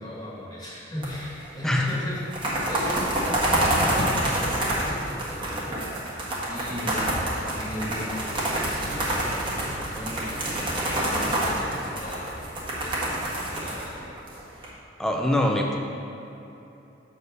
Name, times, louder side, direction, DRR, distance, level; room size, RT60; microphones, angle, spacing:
voice 1, 0.0-14.2, left 1 dB, 25° left, -7 dB, 1.6 m, -37 dB
sound 1, 1.0-1.5 1.7-1.8 2.2-14.7, right 1 dB, 25° right, 1.5 m, -27 dB
voice 2, 15.0-15.8, left 1 dB, 5° left, 0 dB, 0.7 m, -23 dB
6.6 x 4.4 x 6.7 m, 2.9 s
head